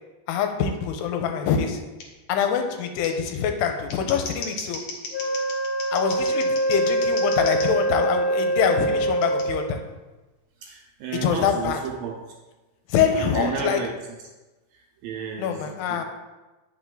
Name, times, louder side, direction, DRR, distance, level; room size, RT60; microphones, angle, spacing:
voice 1, 0.3-1.8 2.3-4.8 5.9-9.8 11.2-11.8 12.9-13.8 15.4-16.0, left 7 dB, 85° left, 5 dB, 2.7 m, -24 dB
Scissors, 2.0-2.1 3.0-3.1 3.7-7.7 9.2-9.4, left 4 dB, 70° left, 1.7 m, -36 dB
Wind instrument woodwind instrument, 5.1-9.7, right 1 dB, 50° left, 2.5 m, -24 dB
voice 2, 10.6-12.2 13.1-13.9 15.0-16.0, right 6 dB, 75° right, 0 dB, 2.2 m, -32 dB
9.5 x 5.8 x 3.7 m, 1.1 s
omnidirectional pair, 4.8 m